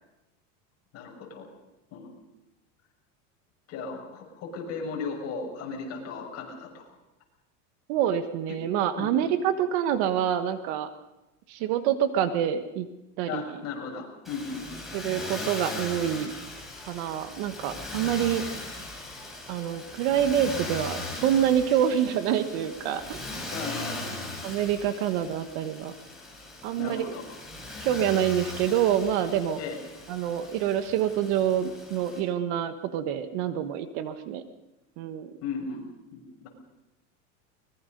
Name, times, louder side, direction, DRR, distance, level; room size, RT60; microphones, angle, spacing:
voice 1, 0.9-1.5 1.9-2.1 3.7-6.8 8.5-8.6 9.0-9.1 13.3-14.7 23.5-24.3 26.8-27.2 29.6-29.8 35.4-35.8 36.1-36.5, left 5 dB, 40° left, 0 dB, 6.4 m, -36 dB
voice 2, 7.9-10.9 11.5-12.9 13.2-13.5 14.9-16.3 16.9-18.4 19.5-23.3 24.4-25.9 26.6-27.1 27.8-29.6 30.1-34.4 35.0-35.4, right 10 dB, 60° right, 10 dB, 1.5 m, -26 dB
Motor vehicle (road), 14.2-32.2, left 2 dB, ahead, 5.9 m, -39 dB
23.5 x 21.0 x 5.4 m, 0.97 s
supercardioid pair, 150°, 38 cm